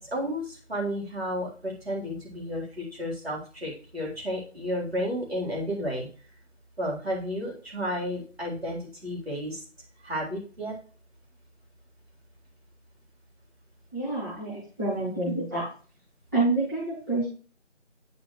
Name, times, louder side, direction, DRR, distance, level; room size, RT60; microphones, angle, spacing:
voice 1, 0.0-6.1 6.8-9.6 10.0-10.7, equal, 55° right, -3 dB, 3.8 m, -32 dB
voice 2, 13.9-15.7 16.3-17.3, right 2 dB, 15° right, -12 dB, 2.3 m, -28 dB
9.5 x 5.0 x 3.2 m, 0.38 s
figure-of-eight pair, 170°, 36 cm